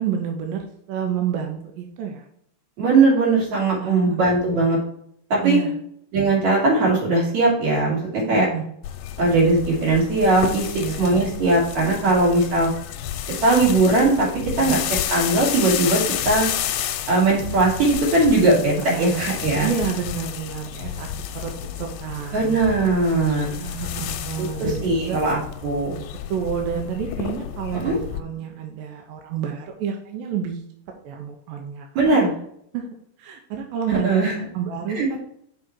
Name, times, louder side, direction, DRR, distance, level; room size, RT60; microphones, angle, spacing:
voice 1, 0.0-2.2 3.8-4.2 5.4-5.8 8.3-8.7 10.8-11.1 14.6-14.8 18.8-19.2 19.6-21.1 21.3-21.5 21.8-22.6 23.6-25.2 26.3-30.6 31.0-32.2 32.7-32.9 33.2-35.2, right 8 dB, 90° right, 3 dB, 2.5 m, -29 dB
voice 2, 2.8-4.8 5.3-5.6 6.1-8.5 9.2-10.7 11.0-12.7 13.4-14.3 14.6-14.8 15.1-16.5 17.1-19.7 22.3-23.5 24.4-26.0 27.7-28.0 32.0-32.3 33.9-34.4 34.9-35.1, right 2 dB, 55° right, -4 dB, 3.8 m, -19 dB
sound 1, 8.8-28.2, left 10 dB, 85° left, 2.2 m, -31 dB
6.2 x 4.8 x 4.4 m, 0.70 s
omnidirectional pair, 4.0 m